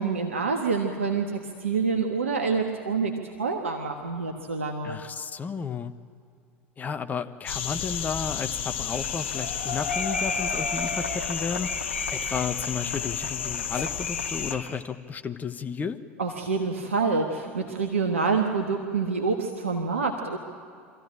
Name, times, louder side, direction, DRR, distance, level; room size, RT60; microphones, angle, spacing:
voice 1, 0.0-3.1 3.4-5.0 16.2-20.4, right 4 dB, 80° right, 3 dB, 1.3 m, -27 dB
voice 2, 4.8-5.9 6.8-11.7 12.1-16.0, left 6 dB, 25° left, 9 dB, 1.0 m, -33 dB
sound 1, 7.5-14.5, left 9 dB, 65° left, 1.2 m, -32 dB
sound 2, 8.9-14.8, left 3 dB, 85° left, 1.4 m, -33 dB
25.0 x 15.0 x 8.8 m, 2.4 s
figure-of-eight pair, 80°, 7 cm